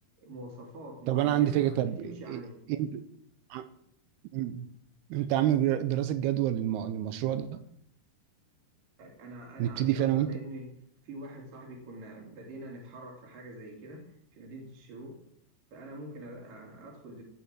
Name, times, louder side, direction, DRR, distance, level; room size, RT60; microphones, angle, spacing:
voice 1, 0.2-2.6 9.0-10.7 11.0-15.2 15.7-17.2, right 1 dB, 60° right, -1 dB, 4.2 m, -44 dB
voice 2, 1.1-2.0 2.3-2.4 2.7-3.0 3.5-3.6 4.3-4.7 5.1-7.5 9.6-10.3, right 12 dB, 85° right, 11 dB, 2.8 m, -27 dB
16.5 x 5.7 x 7.6 m, 0.72 s
omnidirectional pair, 4.6 m